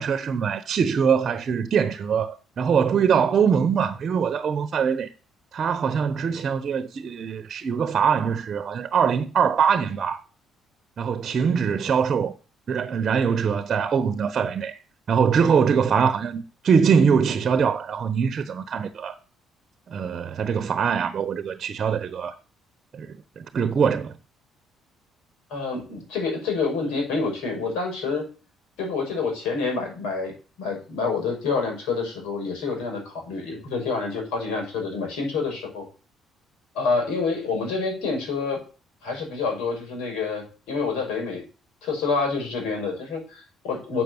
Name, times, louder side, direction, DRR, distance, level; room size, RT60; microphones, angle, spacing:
voice 1, 0.0-5.1 5.5-10.2 11.0-12.3 12.7-14.8 15.1-19.2 19.9-22.4 22.9-24.2, right 6 dB, 50° right, 1.0 m, -23 dB
voice 2, 25.5-28.3 28.8-35.8 36.7-38.6 39.0-41.4 41.8-44.0, left 4 dB, 80° left, 5.9 m, -27 dB
7.8 x 6.7 x 7.9 m
supercardioid pair, 70°, 0 cm